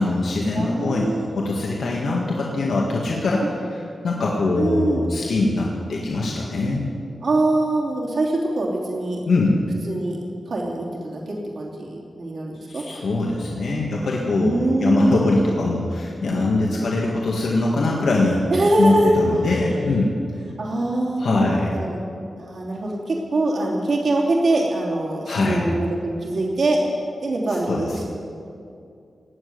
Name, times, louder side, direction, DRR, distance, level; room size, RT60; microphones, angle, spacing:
voice 1, 0.0-1.1 1.4-6.9 9.3-9.6 12.7-18.4 18.8-20.1 21.2-21.7 25.3-25.7 27.7-28.0, left 2 dB, 70° left, -3 dB, 1.9 m, -22 dB
voice 2, 0.5-1.3 3.4-3.5 4.6-5.0 7.2-9.2 9.8-10.2 10.5-12.8 14.3-15.3 18.5-19.1 19.5-19.6 20.6-22.0 22.4-26.8 27.2-27.9, right 2 dB, 55° right, -3 dB, 3.0 m, -23 dB
18.5 x 7.3 x 9.5 m, 2.5 s
wide cardioid pair, 150°, 0 cm